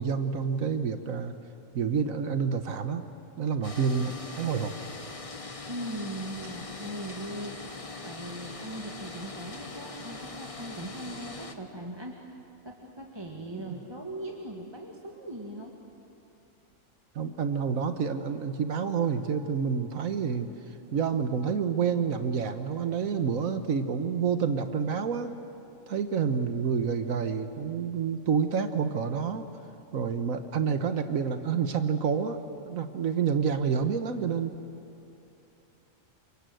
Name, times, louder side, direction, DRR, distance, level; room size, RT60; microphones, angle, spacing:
voice 1, 0.0-1.3 1.7-3.1 3.4-4.7 13.5-13.8 17.1-25.3 25.9-29.5 29.9-34.5, right 6 dB, 85° right, 8 dB, 1.5 m, -28 dB
sound 1, 3.6-11.5, left 3 dB, 25° left, 1.3 m, -41 dB
voice 2, 5.6-7.6 8.0-12.1 12.6-15.7, right 1 dB, 20° right, -1 dB, 1.8 m, -39 dB
29.5 x 25.5 x 7.8 m, 2.8 s
omnidirectional pair, 1.4 m